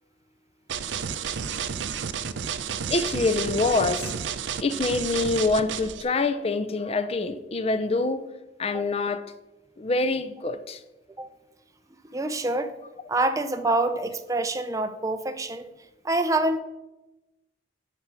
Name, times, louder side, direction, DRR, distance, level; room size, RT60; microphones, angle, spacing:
sound 1, 0.7-6.0, right 7 dB, 75° right, 0.5 m, -31 dB
voice 1, 2.9-4.1 4.6-8.2 8.6-9.2 9.8-10.8, left 3 dB, 35° left, 0.5 m, -25 dB
voice 2, 12.1-12.7 13.1-15.7 16.0-16.6, right 2 dB, 20° right, 0.5 m, -26 dB
8.8 x 5.0 x 5.9 m
head